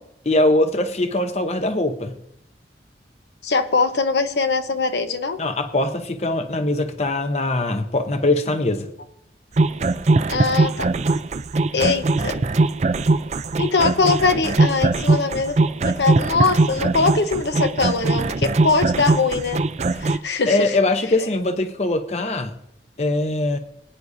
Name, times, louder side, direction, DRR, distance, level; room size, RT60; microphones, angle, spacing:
voice 1, 0.3-2.1 5.4-8.9 20.5-22.5 23.0-23.6, left 2 dB, 35° left, 7 dB, 0.7 m, -21 dB
voice 2, 3.4-5.4 10.3-10.9 11.7-12.4 13.6-19.6 19.9-20.8, left 4 dB, 75° left, 8 dB, 0.9 m, -22 dB
sound 1, 9.6-20.2, right 3 dB, 40° right, 0.4 m, -20 dB
22.0 x 9.6 x 2.6 m, 0.75 s
head